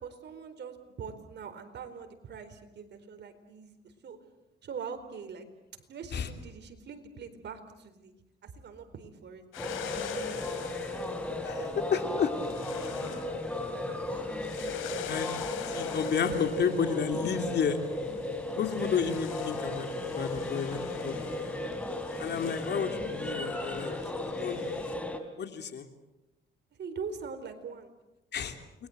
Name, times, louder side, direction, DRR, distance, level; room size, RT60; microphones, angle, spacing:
voice 1, 0.0-4.2 4.6-5.5 5.9-9.4 11.6-13.3 13.9-14.3 26.7-27.9, right 5 dB, 60° right, 8 dB, 4.4 m, -43 dB
sound 1, 9.5-25.0, left 10 dB, 85° left, 3.2 m, -45 dB
sound 2, 9.6-25.2, left 2 dB, 5° left, 3.7 m, -35 dB
voice 2, 11.4-12.3 15.1-15.3 15.7-17.8 18.5-21.5 22.2-23.9 24.2-24.6 25.4-25.9 28.3-28.6, left 7 dB, 60° left, 7 dB, 3.1 m, -31 dB
29.0 x 22.0 x 8.1 m, 0.94 s
cardioid pair, 90°, 20 cm